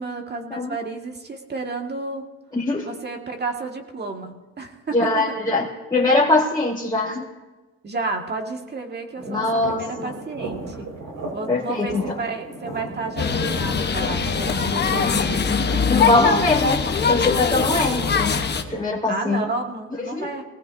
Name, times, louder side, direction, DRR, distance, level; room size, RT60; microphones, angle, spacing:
voice 1, 0.0-2.3 2.8-5.3 7.8-10.9 11.3-15.9 17.7-18.0 19.1-20.4, right 3 dB, 35° right, 2 dB, 2.0 m, -31 dB
voice 2, 2.5-2.9 4.9-7.2 9.3-10.1 11.5-12.0 15.9-18.4 18.7-19.4 20.0-20.3, left 2 dB, 15° left, -6 dB, 2.1 m, -22 dB
sound 1, 9.2-18.8, right 2 dB, 80° right, 5.2 m, -36 dB
sound 2, 13.2-18.6, left 6 dB, 35° left, 1.1 m, -22 dB
23.0 x 18.0 x 2.7 m, 1.2 s
cardioid pair, 90°, 30 cm